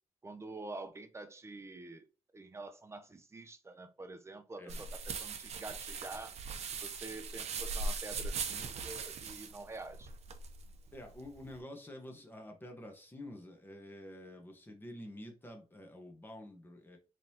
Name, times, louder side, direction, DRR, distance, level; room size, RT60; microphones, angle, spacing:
voice 1, 0.2-2.1 2.3-6.4 6.7-10.1, right 2 dB, 25° right, 0.7 m, -47 dB
voice 2, 4.6-4.9 10.9-17.0, left 1 dB, 20° left, 1.2 m, -49 dB
sound 1, 4.7-11.6, right 4 dB, 85° right, 0.6 m, -40 dB
3.8 x 3.2 x 2.8 m
cardioid pair, 85°, 11 cm